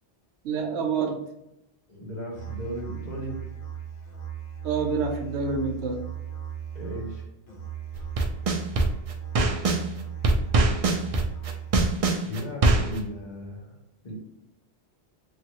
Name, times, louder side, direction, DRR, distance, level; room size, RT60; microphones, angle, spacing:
voice 1, 0.4-1.2 4.6-6.0, right 5 dB, 85° right, 3 dB, 0.9 m, -27 dB
voice 2, 1.9-3.4 6.7-7.2 12.2-13.8 14.0-14.2, equal, 45° left, -4 dB, 1.1 m, -36 dB
Musical instrument, 2.3-12.3, right 8 dB, 80° left, 1.1 m, -37 dB
sound 1, 7.9-9.8 10.2-13.0, right 2 dB, 65° right, 0.3 m, -22 dB
3.2 x 2.3 x 2.8 m, 0.85 s
omnidirectional pair, 1.1 m